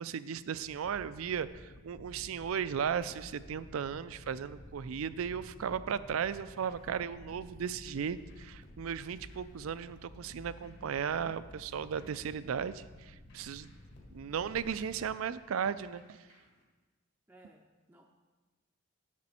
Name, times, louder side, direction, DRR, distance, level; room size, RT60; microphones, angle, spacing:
voice 1, 0.0-13.8 14.1-16.2, right 7 dB, 80° right, 15 dB, 0.4 m, -36 dB
sound 1, 0.6-15.2, left 1 dB, 75° left, 0.9 m, -53 dB
sound 2, 6.0-16.6, left 1 dB, 55° left, 1.7 m, -64 dB
voice 2, 17.3-18.1, right 1 dB, 10° right, 1 dB, 0.4 m, -59 dB
10.5 x 6.9 x 4.3 m, 1.3 s
head